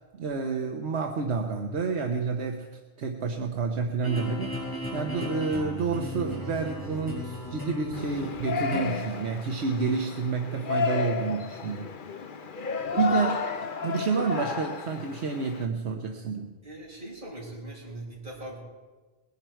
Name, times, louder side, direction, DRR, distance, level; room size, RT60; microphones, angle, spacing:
voice 1, 0.1-2.7 3.0-11.9 12.9-13.6 13.8-16.5, right 5 dB, 80° right, 3 dB, 1.2 m, -29 dB
sound 1, 4.0-9.0, left 1 dB, 20° left, 5.9 m, -36 dB
Yell, 7.9-15.6, left 5 dB, 55° left, 1.0 m, -32 dB
voice 2, 12.6-13.1 16.6-18.6, right 1 dB, 50° right, -3 dB, 5.1 m, -41 dB
20.5 x 11.0 x 4.5 m, 1.3 s
omnidirectional pair, 1.1 m